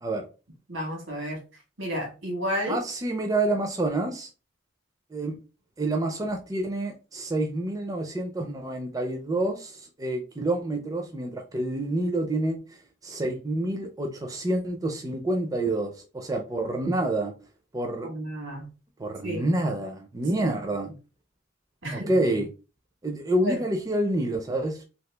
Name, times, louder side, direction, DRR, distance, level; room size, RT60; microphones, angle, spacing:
voice 1, 0.7-1.4 1.8-2.8 18.0-18.7 19.2-19.4 20.3-20.5 21.8-22.1 23.4-23.6, equal, 85° right, 1.4 m, -31 dB
voice 2, 2.7-4.3 5.1-5.4 5.8-12.6 13.0-17.3 17.7-18.1 19.0-20.9 21.9-22.5 23.0-24.8, right 1 dB, 20° right, 0.4 m, -28 dB
2.9 x 2.6 x 3.2 m
head